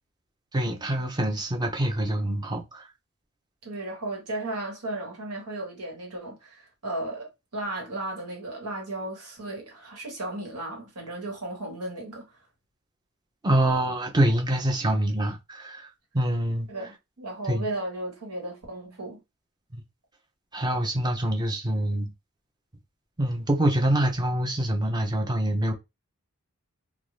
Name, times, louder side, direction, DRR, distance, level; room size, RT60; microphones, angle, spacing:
voice 1, 0.5-2.8 13.4-15.9 16.1-16.7 17.5-17.7 19.7-19.8 20.5-22.1 23.2-25.7, right 1 dB, 20° right, 0.6 m, -25 dB
voice 2, 3.6-12.2 16.7-19.2, right 2 dB, 90° right, 1.4 m, -35 dB
2.6 x 2.4 x 3.1 m
head